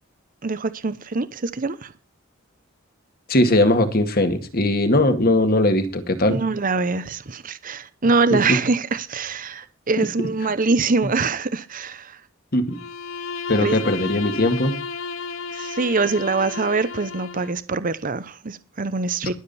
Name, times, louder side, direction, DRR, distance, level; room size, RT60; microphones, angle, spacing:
voice 1, 0.4-1.9 6.3-12.2 13.6-13.8 15.5-19.3, right 4 dB, 40° right, 0.8 m, -24 dB
voice 2, 3.3-6.4 8.5-8.6 12.5-12.8 13.5-14.7, left 1 dB, 45° left, 2.1 m, -19 dB
Bowed string instrument, 12.7-17.6, left 5 dB, 80° left, 1.3 m, -33 dB
21.5 x 7.5 x 4.2 m
head